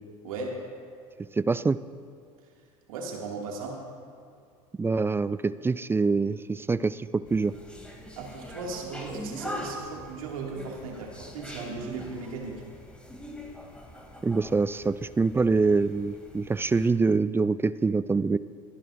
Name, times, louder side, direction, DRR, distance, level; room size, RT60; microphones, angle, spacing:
voice 1, 0.2-0.6 2.9-3.8 8.1-12.6, right 3 dB, 80° right, -1 dB, 2.3 m, -37 dB
voice 2, 1.4-1.8 4.8-7.5 14.2-18.4, right 4 dB, 15° right, 16 dB, 0.3 m, -25 dB
sound 1, 7.2-16.9, equal, 5° left, 2.6 m, -43 dB
28.0 x 10.5 x 2.6 m, 2.3 s
hypercardioid pair, 80°, 17 cm